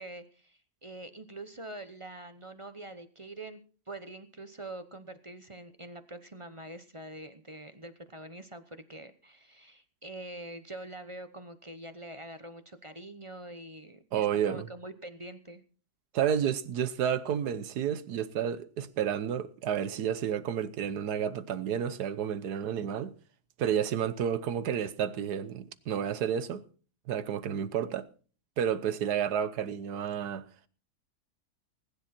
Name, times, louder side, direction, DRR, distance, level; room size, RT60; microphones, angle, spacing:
voice 1, 0.0-3.6 3.9-15.6, right 1 dB, 25° right, 0.8 m, -45 dB
voice 2, 14.1-14.7 16.1-23.1 23.6-26.6 27.1-28.1 28.6-30.4, right 8 dB, 90° right, 1.5 m, -30 dB
20.0 x 10.5 x 4.3 m
omnidirectional pair, 1.7 m